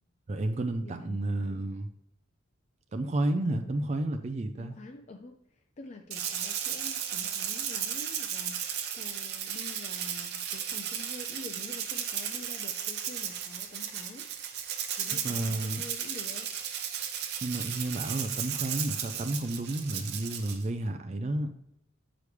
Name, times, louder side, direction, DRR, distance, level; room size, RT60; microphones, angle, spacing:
voice 1, 0.3-1.9 2.9-4.7 15.2-15.8 17.4-21.5, right 2 dB, 30° right, 6 dB, 0.4 m, -31 dB
voice 2, 0.8-1.6 3.4-3.7 4.6-5.4 5.8-8.6 8.9-14.3 15.0-16.5, left 2 dB, 35° left, 4 dB, 0.4 m, -47 dB
Rattle (instrument), 6.1-20.6, right 9 dB, 50° right, 0.8 m, -35 dB
8.2 x 5.0 x 3.2 m, 0.80 s
head